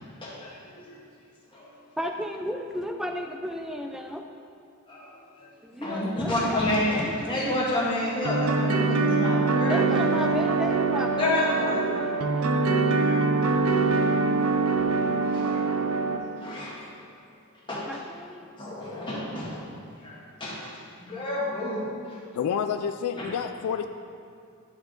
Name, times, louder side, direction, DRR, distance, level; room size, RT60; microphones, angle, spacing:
voice 1, 0.2-1.0 1.5-1.7 4.9-10.1 11.2-11.9 12.9-13.6 15.1-15.7 16.3-16.9 17.7-17.8 18.6-19.6 20.0-20.7 21.0-22.2 23.2-23.3, left 1 dB, 25° left, -7 dB, 1.8 m, -30 dB
voice 2, 2.0-4.2 5.6-7.6 9.7-12.5 17.9-18.5, equal, ahead, 3 dB, 0.4 m, -34 dB
sound 1, 8.2-16.2, right 3 dB, 80° right, 0.6 m, -24 dB
voice 3, 22.3-23.9, left 7 dB, 80° left, 9 dB, 0.3 m, -28 dB
11.5 x 4.7 x 3.9 m, 2.4 s
head